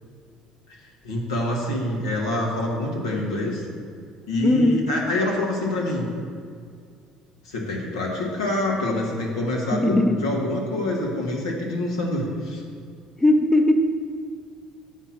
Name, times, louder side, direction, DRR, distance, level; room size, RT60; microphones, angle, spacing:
voice 1, 1.0-3.7 4.3-6.1 7.4-12.6, left 1 dB, 85° left, -2 dB, 1.3 m, -26 dB
voice 2, 4.4-4.8 9.7-10.3 13.2-13.7, left 1 dB, 10° left, 5 dB, 0.7 m, -19 dB
8.1 x 4.4 x 5.8 m, 2.1 s
hypercardioid pair, 65°, 3 cm